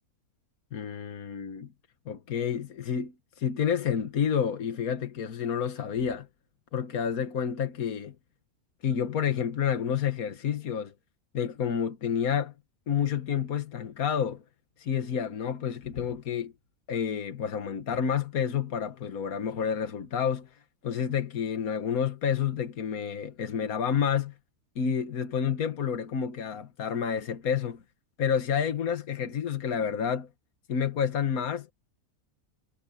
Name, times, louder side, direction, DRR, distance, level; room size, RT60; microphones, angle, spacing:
voice 1, 0.7-1.7 2.1-6.3 6.7-8.2 8.8-10.9 11.3-12.5 12.9-14.4 14.8-16.5 16.9-20.5 20.8-24.3 24.8-27.8 28.2-30.3 30.7-31.7, left 7 dB, 75° left, 1.8 m, -29 dB
omnidirectional pair, 1.5 m